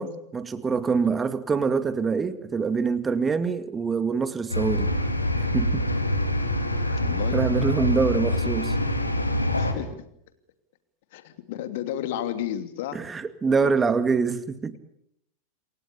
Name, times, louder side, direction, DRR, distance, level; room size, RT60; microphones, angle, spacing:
voice 1, 0.0-4.9 5.5-5.8 6.9-7.0 7.3-8.8 12.9-14.8, right 5 dB, 15° right, 12 dB, 2.2 m, -25 dB
sound 1, 4.5-9.7, left 1 dB, 85° left, 3.9 m, -25 dB
voice 2, 7.0-7.4 9.5-10.0 11.1-13.0 13.6-13.7, left 11 dB, 50° left, 10 dB, 2.8 m, -33 dB
28.0 x 24.0 x 7.1 m, 0.75 s
figure-of-eight pair, 90°, 0 cm